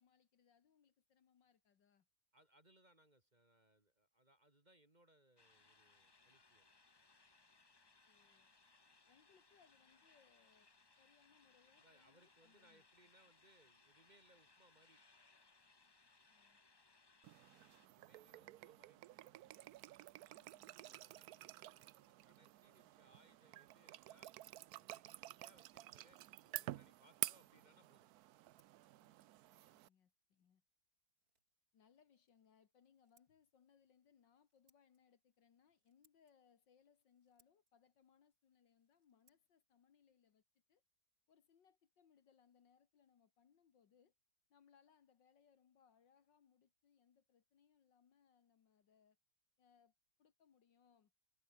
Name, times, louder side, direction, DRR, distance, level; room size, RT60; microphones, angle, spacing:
voice 1, 0.0-2.1 8.0-8.5 9.1-10.7 11.0-12.9 16.3-16.6 18.5-18.7 20.3-21.5 29.0-29.2 29.7-30.6 31.7-40.4 40.7-40.8 41.3-44.1 44.5-49.2 49.6-51.1, left 7 dB, 65° left, 2.2 m, -73 dB
voice 2, 2.3-6.7 11.8-15.0 17.9-19.8 20.9-24.3 24.7-28.1, right 1 dB, 20° right, 2.6 m, -71 dB
sound 1, 5.4-17.9, left 3 dB, 40° left, 0.3 m, -70 dB
sound 2, 17.2-29.9, right 15 dB, 75° right, 0.9 m, -51 dB
Scissors, 29.2-41.6, right 3 dB, 45° right, 6.0 m, -85 dB
omnidirectional pair, 2.1 m